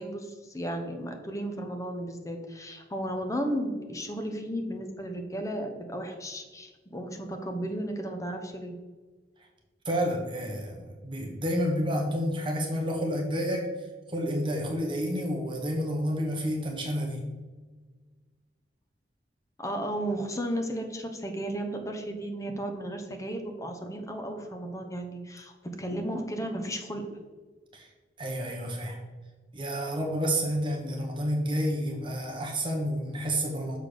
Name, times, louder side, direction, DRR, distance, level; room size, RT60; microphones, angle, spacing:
voice 1, 0.0-8.8 19.6-25.5 25.8-27.0, right 1 dB, 20° left, 4 dB, 0.9 m, -34 dB
voice 2, 9.8-13.7 14.1-17.2 27.7-27.9 28.2-29.0 29.5-33.8, equal, 30° right, 0 dB, 1.2 m, -30 dB
6.6 x 4.1 x 6.5 m, 1.4 s
head